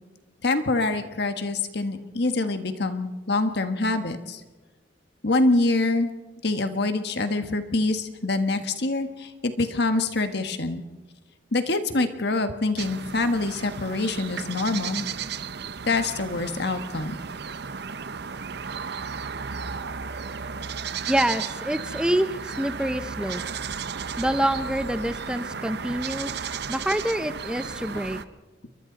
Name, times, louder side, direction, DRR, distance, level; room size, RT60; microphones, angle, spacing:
voice 1, 0.4-4.4 5.2-6.1 6.4-10.8 11.5-15.0 15.8-17.2 27.9-28.0, left 2 dB, 60° left, 8 dB, 1.5 m, -25 dB
sound 1, 12.8-28.2, right 6 dB, 60° right, 0.7 m, -34 dB
voice 2, 21.1-23.4 24.2-28.2, right 1 dB, 5° right, 10 dB, 0.6 m, -27 dB
29.0 x 23.0 x 4.0 m, 1.2 s
head